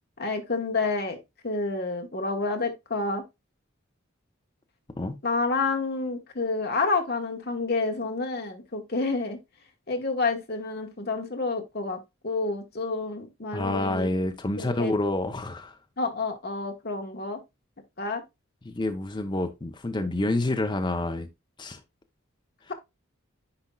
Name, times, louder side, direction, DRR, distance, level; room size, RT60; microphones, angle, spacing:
voice 1, 0.2-1.2 1.4-3.2 5.2-9.4 9.9-12.0 12.2-14.1 14.6-14.9 16.0-17.4 18.0-18.2, left 3 dB, 45° left, 1.1 m, -29 dB
voice 2, 13.5-15.8 18.6-21.3 21.6-21.8, left 2 dB, 20° left, 0.6 m, -28 dB
9.7 x 4.3 x 2.2 m
head